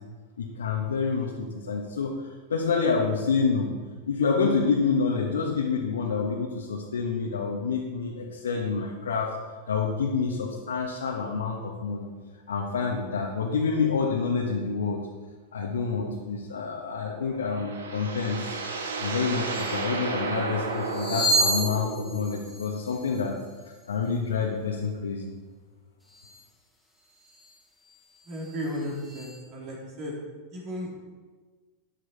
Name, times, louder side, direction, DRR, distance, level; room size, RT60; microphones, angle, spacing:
voice 1, 0.4-3.7 4.1-9.3 9.7-12.1 12.5-15.0 15.5-18.6 19.0-23.3 23.9-25.2, left 5 dB, 65° left, -2 dB, 1.5 m, -28 dB
sound 1, 17.1-22.3, right 4 dB, 65° right, 1.6 m, -33 dB
sound 2, 18.9-19.1 19.4-19.8 20.7-23.8 26.1-26.4 27.2-27.5 27.9-29.4, right 1 dB, 5° right, 3.1 m, -31 dB
voice 2, 28.3-30.2 30.5-30.9, equal, 40° right, -3 dB, 3.4 m, -34 dB
13.0 x 9.9 x 4.3 m, 1.4 s
figure-of-eight pair, 90°, 0 cm